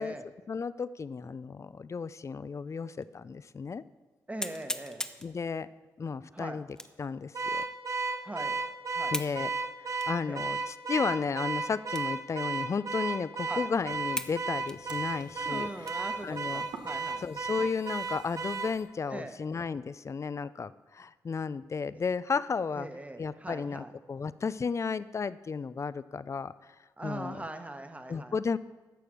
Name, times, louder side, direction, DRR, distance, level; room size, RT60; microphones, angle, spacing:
voice 1, 0.5-3.8 5.2-5.7 6.0-6.7 7.0-7.6 9.1-9.5 9.9-16.7 17.2-22.9 23.2-26.5 27.0-27.5 28.1-28.6, left 5 dB, 40° left, 16 dB, 0.5 m, -33 dB
sound 1, 3.0-3.1 3.6-3.7 4.4-5.3 6.7-7.1 7.6-7.7 9.1-9.4 10.0-10.1 10.8-10.9 11.9-12.2 12.5-12.6 13.3-13.4 14.2-14.4 14.7-16.2 16.7-16.8 17.3-17.7, left 1 dB, 10° left, 0.8 m, -38 dB
voice 2, 4.3-5.0 6.3-6.6 8.2-8.5 8.9-9.1 10.3-10.4 13.5-13.6 15.4-17.2 19.1-19.3 22.8-23.9 27.0-28.3, right 2 dB, 20° right, 7 dB, 1.2 m, -41 dB
Car / Alarm, 7.3-18.8, right 4 dB, 50° right, 0.7 m, -34 dB
sound 2, 13.7-18.8, right 5 dB, 85° right, 1.1 m, -53 dB
11.5 x 7.0 x 6.2 m, 1.3 s
cardioid pair, 65°, 7 cm